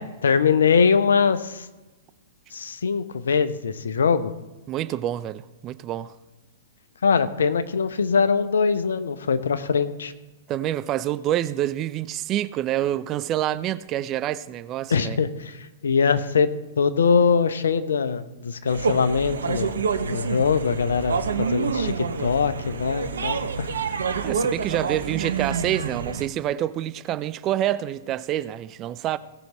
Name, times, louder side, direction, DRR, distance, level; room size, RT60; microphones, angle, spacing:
voice 1, 0.0-1.7 2.5-4.3 7.0-10.1 14.9-19.8 20.1-23.7, left 5 dB, 70° left, 0.8 m, -22 dB
voice 2, 4.7-6.1 10.5-15.2 24.2-29.2, right 12 dB, 30° right, 0.5 m, -27 dB
sound 1, 18.7-26.3, right 6 dB, 70° right, 0.9 m, -28 dB
17.5 x 6.0 x 4.1 m
figure-of-eight pair, 105°, 0 cm